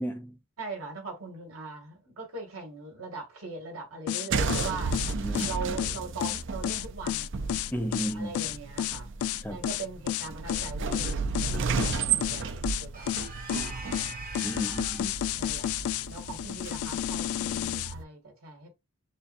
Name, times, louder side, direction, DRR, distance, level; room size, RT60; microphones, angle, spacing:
voice 1, 0.0-0.4 5.2-5.5 7.7-8.3 9.4-9.6 14.4-15.1, equal, 10° left, 0.6 m, -33 dB
voice 2, 0.6-5.0 5.4-7.3 8.1-9.1 9.5-13.1 13.6-14.2 14.6-14.8 15.4-18.7, right 3 dB, 80° right, 2.2 m, -40 dB
sound 1, 4.1-17.9, left 11 dB, 85° left, 0.3 m, -31 dB
sound 2, 4.3-18.0, right 5 dB, 55° right, 0.5 m, -34 dB
sound 3, 12.9-15.2, right 3 dB, 40° right, 1.1 m, -43 dB
6.6 x 2.3 x 2.6 m
head